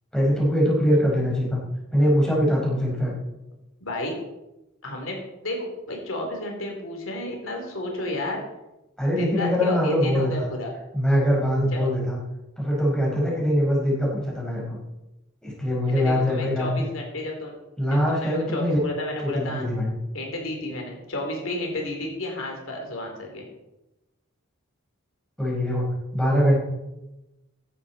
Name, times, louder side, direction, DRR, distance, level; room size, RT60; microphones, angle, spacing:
voice 1, 0.1-1.6 1.9-3.1 9.0-10.3 10.9-12.2 12.6-14.8 15.4-16.9 17.8-18.8 19.2-19.9 25.4-25.8 26.1-26.6, equal, 5° left, -4 dB, 4.6 m, -22 dB
voice 2, 3.8-4.1 4.8-5.2 5.4-8.4 9.2-10.7 11.7-11.9 15.9-17.5 17.9-19.7 20.1-23.5, left 1 dB, 75° left, 1 dB, 3.2 m, -32 dB
15.5 x 11.0 x 4.2 m, 0.97 s
head